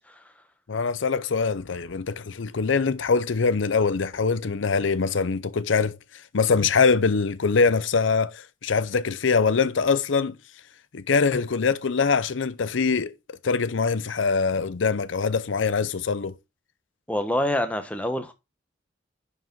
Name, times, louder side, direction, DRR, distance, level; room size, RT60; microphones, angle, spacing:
voice 1, 0.7-6.0 6.3-10.4 10.9-16.3, left 5 dB, 85° left, 0.6 m, -23 dB
voice 2, 17.1-18.3, left 1 dB, 10° left, 1.1 m, -26 dB
11.0 x 4.9 x 3.9 m
head